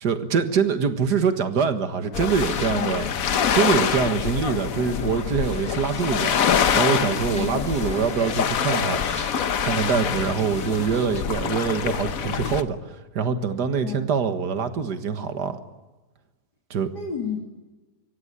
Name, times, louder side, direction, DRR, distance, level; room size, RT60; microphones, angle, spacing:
voice 1, 0.0-3.1 3.5-6.4 6.7-9.0 9.4-12.8 13.2-15.6 16.7-16.9, right 6 dB, 85° right, 9 dB, 2.1 m, -24 dB
sound 1, 2.1-12.6, left 8 dB, 60° left, 1.3 m, -25 dB
sound 2, 2.4-11.2, equal, 5° left, 1.9 m, -41 dB
voice 2, 2.7-3.1 7.3-7.7 13.8-14.1 16.9-17.4, left 6 dB, 90° left, 0 dB, 3.6 m, -31 dB
24.0 x 17.0 x 9.8 m, 1.2 s
omnidirectional pair, 1.7 m